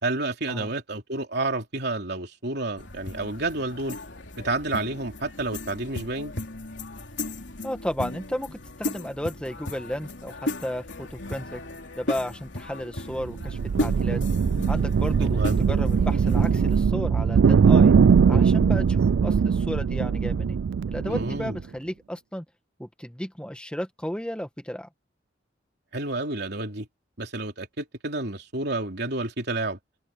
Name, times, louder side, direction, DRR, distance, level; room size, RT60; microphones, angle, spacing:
voice 1, 0.0-4.0 4.4-6.3 15.2-15.6 21.1-21.6 25.9-26.9 27.2-29.8, right 2 dB, 60° right, 3.4 m, -30 dB
sound 1, 2.8-16.8, left 1 dB, 70° left, 3.4 m, -36 dB
voice 2, 7.6-10.3 10.6-11.6 12.0-14.2 14.7-15.4 15.7-17.9 18.3-20.6 20.9-22.4 22.8-24.9, equal, 5° left, 1.8 m, -33 dB
sound 2, 13.1-21.6, right 6 dB, 85° right, 0.4 m, -21 dB
head